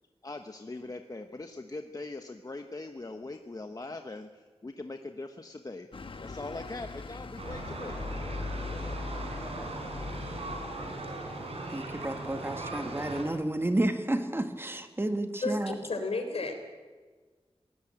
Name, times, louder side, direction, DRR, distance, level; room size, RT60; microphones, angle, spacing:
voice 1, 0.2-5.9 6.2-8.1, left 2 dB, 35° left, 6 dB, 1.1 m, -41 dB
sound 1, 5.9-11.0, left 3 dB, 60° left, 1.3 m, -40 dB
sound 2, 7.4-13.2, right 2 dB, 75° right, 4.8 m, -39 dB
voice 2, 11.7-15.7, right 1 dB, 20° right, 6 dB, 1.7 m, -31 dB
voice 3, 15.4-16.5, left 3 dB, 75° left, 6 dB, 3.9 m, -32 dB
21.0 x 18.0 x 8.9 m, 1.4 s
wide cardioid pair, 95°, 10 cm